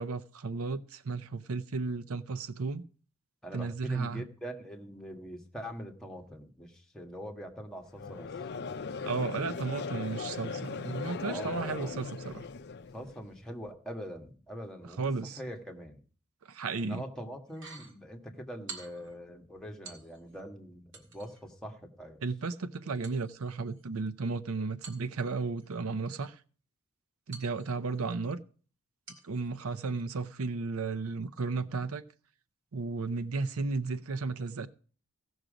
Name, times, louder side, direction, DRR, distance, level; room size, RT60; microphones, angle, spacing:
voice 1, 0.0-2.8 3.5-4.3 9.0-12.4 15.0-15.4 16.5-17.0 22.2-26.4 27.3-28.4 29.2-32.0 32.7-34.7, right 4 dB, 90° right, 0.6 m, -34 dB
voice 2, 3.4-8.3 11.3-11.9 12.9-16.0 16.8-22.2, equal, 5° left, 1.5 m, -43 dB
Conversation / Crowd, 7.9-13.2, left 5 dB, 55° left, 0.5 m, -38 dB
sound 1, 17.5-18.0 18.7-19.2 19.8-20.4 20.9-21.5 23.0-24.1 24.8-25.7 27.3-28.1 29.1-29.5 29.9-30.0, right 5 dB, 60° right, 2.2 m, -49 dB
16.5 x 6.3 x 5.1 m
head